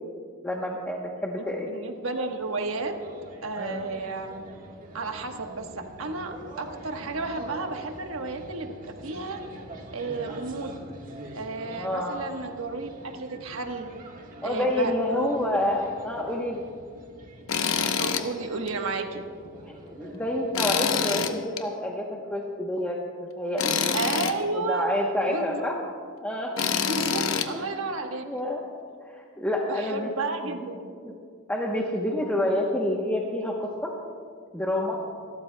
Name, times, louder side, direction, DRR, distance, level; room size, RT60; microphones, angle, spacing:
voice 1, 0.4-1.7 3.5-3.8 11.8-12.2 14.4-16.6 19.9-23.8 24.5-25.8 26.2-26.5 27.5-27.7 28.3-28.6 29.0-30.1 30.4-30.6 31.0-31.2 31.5-33.9 34.5-35.0, left 1 dB, 10° left, -2 dB, 0.9 m, -28 dB
voice 2, 1.7-3.0 3.4-4.4 4.9-9.4 9.9-10.8 11.3-13.9 14.4-15.3 18.0-19.2 23.9-24.9 25.3-25.7 26.8-28.4 29.7-30.9, right 3 dB, 80° right, 4 dB, 1.2 m, -32 dB
sound 1, 2.0-20.8, right 1 dB, 40° right, 1.4 m, -45 dB
Tools, 17.5-18.3 18.7-18.8 20.5-21.6 23.6-24.3 26.6-27.5, left 6 dB, 75° left, 0.8 m, -26 dB
26.5 x 13.0 x 2.2 m, 2.1 s
head